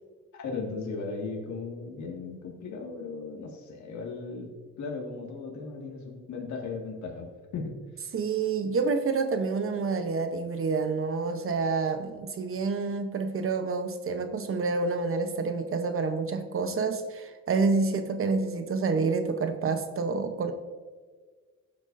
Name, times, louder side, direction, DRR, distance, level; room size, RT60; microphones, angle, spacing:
voice 1, 0.3-4.5 4.8-7.8, left 4 dB, 70° left, 0 dB, 2.0 m, -37 dB
voice 2, 8.1-20.5, right 4 dB, 45° right, 8 dB, 0.9 m, -28 dB
14.0 x 8.1 x 2.6 m, 1.5 s
cardioid pair, 90°, 30 cm